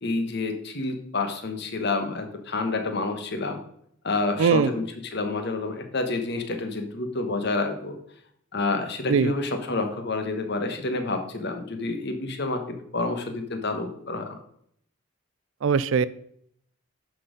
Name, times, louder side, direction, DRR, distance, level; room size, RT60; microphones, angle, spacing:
voice 1, 0.0-3.6 4.0-8.0 8.5-14.3, left 3 dB, 50° left, 6 dB, 1.2 m, -29 dB
voice 2, 4.4-4.7 9.1-9.3 15.6-16.1, right 6 dB, 65° right, 17 dB, 0.4 m, -20 dB
11.0 x 4.3 x 5.1 m, 0.68 s
head